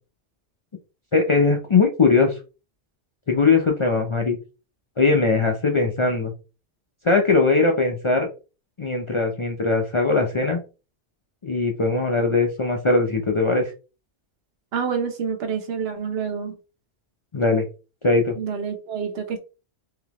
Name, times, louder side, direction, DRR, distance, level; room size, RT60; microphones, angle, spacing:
voice 1, 1.1-2.4 3.3-4.4 5.0-6.3 7.0-8.3 8.8-10.6 11.4-13.7 17.3-17.7 18.0-18.3, left 3 dB, 50° left, 0.3 m, -20 dB
voice 2, 14.7-16.6 18.4-19.4, right 6 dB, 60° right, 1.0 m, -27 dB
3.8 x 2.8 x 2.9 m
omnidirectional pair, 1.2 m